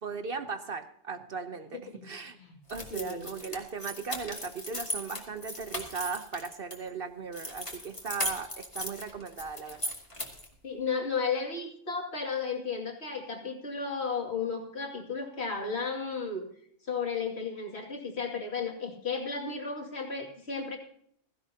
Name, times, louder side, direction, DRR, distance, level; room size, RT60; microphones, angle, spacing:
voice 1, 0.0-2.4 2.7-9.8, right 5 dB, 50° right, 9 dB, 1.0 m, -37 dB
sound 1, 2.7-6.8 7.3-10.5, equal, 25° left, 2.3 m, -37 dB
voice 2, 2.9-3.3 10.6-16.5 16.9-20.8, left 5 dB, 60° left, 2 dB, 2.7 m, -34 dB
16.0 x 15.5 x 2.8 m, 0.66 s
omnidirectional pair, 1.2 m